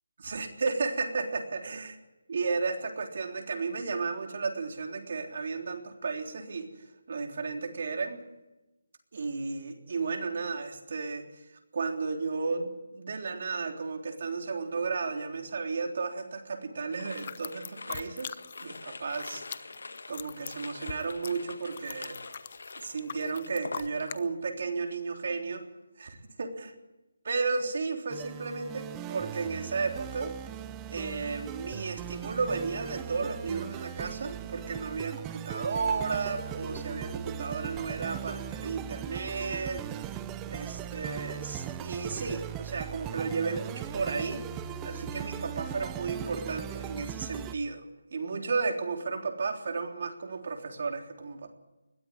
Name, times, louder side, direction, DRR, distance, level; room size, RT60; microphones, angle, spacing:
voice 1, 0.2-2.0 2.3-6.7 7.1-8.2 9.1-11.3 11.7-19.5 20.1-22.2 22.8-25.6 26.0-26.7 27.2-30.4 30.9-40.1 40.5-44.4 44.8-47.8 48.1-51.5, right 4 dB, 50° right, 3 dB, 3.5 m, -33 dB
sound 1, 16.9-24.3 24.6-25.1, left 3 dB, 80° left, 1.6 m, -45 dB
sound 2, 17.1-18.8 19.0-24.2, left 7 dB, 35° left, 0.8 m, -42 dB
sound 3, 28.1-47.5, right 10 dB, 10° right, 0.7 m, -39 dB
21.0 x 13.5 x 9.8 m, 1.0 s
hypercardioid pair, 170°, 0 cm